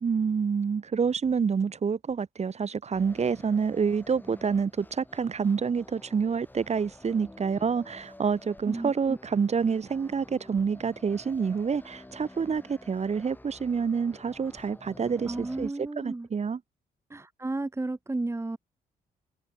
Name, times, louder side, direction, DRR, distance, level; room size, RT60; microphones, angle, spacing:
voice 1, 0.0-15.7 16.0-16.6, right 6 dB, 45° right, 2.3 m, -28 dB
sound 1, 2.9-15.7, left 1 dB, 10° left, 5.0 m, -50 dB
voice 2, 8.7-9.2 15.2-16.3 17.1-18.6, right 2 dB, 15° right, 1.6 m, -33 dB
cardioid pair, 70°, 16 cm